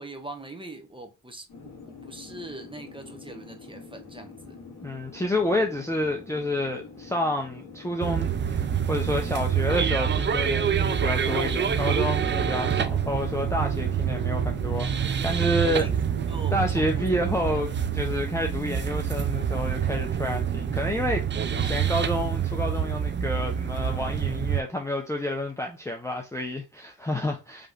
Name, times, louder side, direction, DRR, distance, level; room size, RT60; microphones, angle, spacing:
voice 1, 0.0-1.4 1.9-4.6 15.6-16.0 16.3-17.1 17.3-17.6, right 2 dB, 15° right, 1.0 m, -41 dB
sound 1, 1.5-19.1, left 5 dB, 75° left, 2.2 m, -46 dB
voice 2, 4.8-15.9 16.5-21.2 21.5-27.7, left 1 dB, 5° left, 0.7 m, -29 dB
sound 2, 8.0-24.6, right 8 dB, 30° right, 0.4 m, -27 dB
sound 3, 9.2-17.6, right 13 dB, 80° right, 1.2 m, -44 dB
5.1 x 3.1 x 2.4 m
cardioid pair, 110°, 38 cm